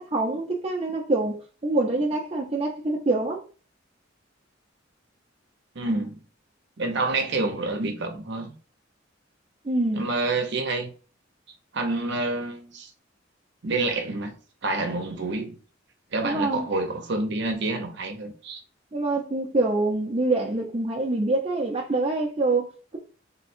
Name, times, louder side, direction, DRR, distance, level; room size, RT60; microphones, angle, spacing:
voice 1, 0.0-3.4 9.6-10.1 16.2-16.7 18.9-23.0, right 2 dB, 30° right, 0.7 m, -25 dB
voice 2, 5.7-6.2 6.8-8.5 9.9-10.9 11.7-12.9 13.6-14.4 14.6-15.5 16.1-18.6, right 2 dB, 60° right, 0.9 m, -28 dB
3.6 x 2.3 x 4.3 m
head